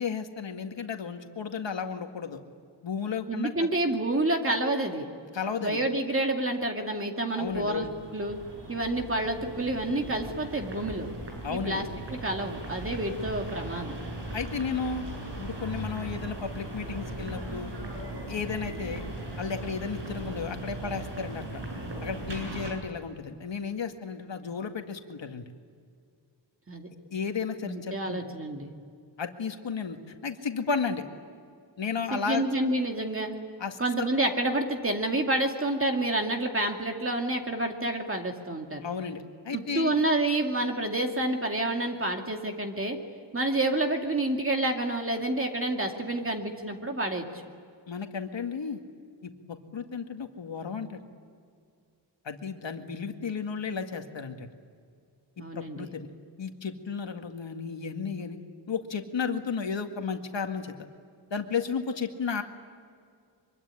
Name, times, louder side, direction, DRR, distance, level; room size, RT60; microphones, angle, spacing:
voice 1, 0.0-2.4 2.8-3.7 5.3-5.8 7.4-7.9 11.4-11.8 14.3-15.0 15.4-17.7 18.3-19.1 19.4-21.6 22.0-25.5 27.1-28.2 29.2-31.0 31.8-32.4 33.6-34.1 38.8-39.9 47.9-48.8 49.2-51.0 52.2-54.5 55.5-56.1 56.4-58.4 58.7-60.7 61.3-62.4, left 6 dB, 75° left, 5 dB, 2.1 m, -33 dB
voice 2, 3.3-5.1 5.6-8.4 8.7-11.1 11.5-13.9 26.7-26.9 27.6-28.7 32.1-33.3 33.8-38.9 39.5-43.0 43.3-47.2 55.4-55.9, right 1 dB, 30° right, 3 dB, 2.4 m, -29 dB
sound 1, 7.4-22.7, right 1 dB, 65° right, 7.8 m, -38 dB
24.5 x 24.0 x 9.9 m, 2.2 s
wide cardioid pair, 135°, 44 cm